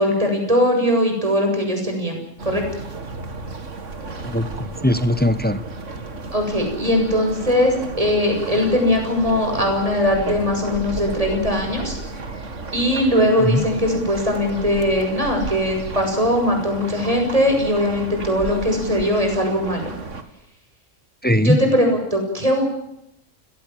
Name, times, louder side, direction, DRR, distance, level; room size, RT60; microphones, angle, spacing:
voice 1, 0.0-2.2 2.5-2.6 6.3-12.0 12.7-19.9 21.4-22.6, left 1 dB, 30° right, 3 dB, 7.2 m, -20 dB
sound 1, 2.4-20.2, right 3 dB, 75° right, 2.4 m, -33 dB
voice 2, 4.0-5.6 13.4-13.6 21.2-21.6, left 1 dB, 10° left, 13 dB, 1.0 m, -20 dB
29.5 x 18.0 x 7.6 m, 0.81 s
omnidirectional pair, 1.3 m